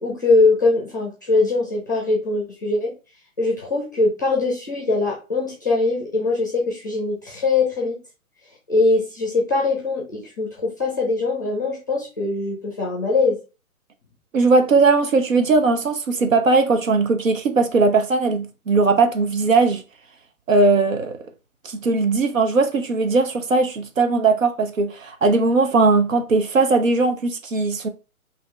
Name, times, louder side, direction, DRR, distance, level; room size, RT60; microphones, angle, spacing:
voice 1, 0.0-2.9 3.4-8.0 8.7-13.4, left 3 dB, 15° left, 0.6 m, -21 dB
voice 2, 14.3-19.8 20.5-21.2 21.6-27.9, right 3 dB, 60° right, 1.0 m, -19 dB
5.1 x 2.8 x 3.2 m
hypercardioid pair, 165°, 44 cm